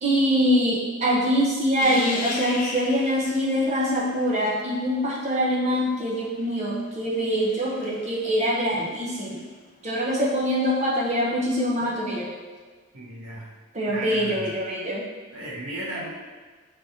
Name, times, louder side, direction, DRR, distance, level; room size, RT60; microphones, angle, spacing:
voice 1, 0.0-9.4 9.8-12.3 13.7-15.0, equal, 30° right, -4 dB, 0.5 m, -24 dB
sound 1, 1.8-4.9 6.0-9.4 11.8-11.9, left 3 dB, 40° left, 0.4 m, -37 dB
voice 2, 12.9-13.5 13.9-14.5 15.3-16.1, right 1 dB, 90° right, -6 dB, 1.2 m, -35 dB
4.8 x 3.3 x 2.7 m, 1.4 s
head